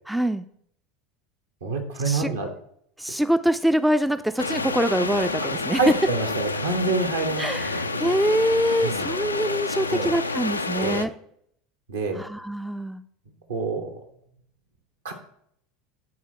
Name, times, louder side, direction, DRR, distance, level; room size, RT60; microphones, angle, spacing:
voice 1, 0.1-0.5 2.0-2.3 3.0-5.9 7.4-11.1 12.1-13.0, equal, 5° right, 11 dB, 0.4 m, -24 dB
voice 2, 1.6-2.5 5.8-7.8 8.8-9.1 9.9-10.1 10.8-11.0 11.9-12.2 13.5-14.0 15.0-15.1, right 3 dB, 70° right, 3 dB, 1.4 m, -27 dB
sound 1, 4.4-11.1, left 3 dB, 85° left, 0.4 m, -29 dB
9.5 x 4.1 x 6.0 m, 0.69 s
figure-of-eight pair, 75°, 0 cm